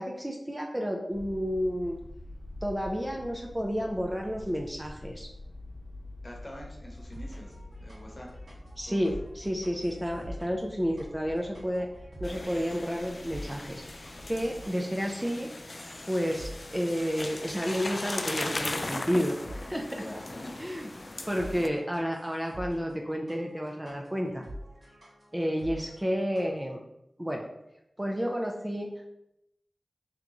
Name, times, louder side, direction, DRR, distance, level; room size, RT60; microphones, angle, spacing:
voice 1, 0.0-2.0 2.6-5.3 8.8-11.9 12.2-15.5 16.1-20.0 20.6-20.9 21.3-24.5 25.3-26.8 27.2-27.5 28.0-28.9, equal, 15° right, 1 dB, 0.4 m, -31 dB
sound 1, 1.1-14.7, left 1 dB, 75° left, 0.6 m, -47 dB
voice 2, 6.2-8.3 8.9-9.0 19.8-20.5 21.4-21.7, equal, 35° left, 0 dB, 1.0 m, -45 dB
sound 2, 6.9-26.6, equal, 80° right, 1.4 m, -48 dB
sound 3, 12.2-21.7, left 2 dB, 50° left, 0.3 m, -38 dB
3.5 x 3.0 x 3.8 m, 0.84 s
wide cardioid pair, 70°, 0 cm